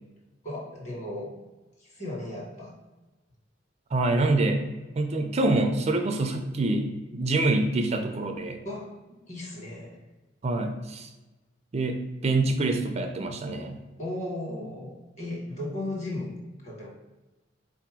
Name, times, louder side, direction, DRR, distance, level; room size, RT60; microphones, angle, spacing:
voice 1, 0.4-1.3 1.8-2.8 8.6-9.0 9.3-10.0 14.0-16.9, left 1 dB, 40° left, -3 dB, 1.4 m, -36 dB
voice 2, 3.9-4.6 4.9-8.6 10.4-11.1 11.7-13.8, right 2 dB, 35° right, 5 dB, 0.4 m, -26 dB
4.0 x 2.9 x 4.7 m, 1.1 s
head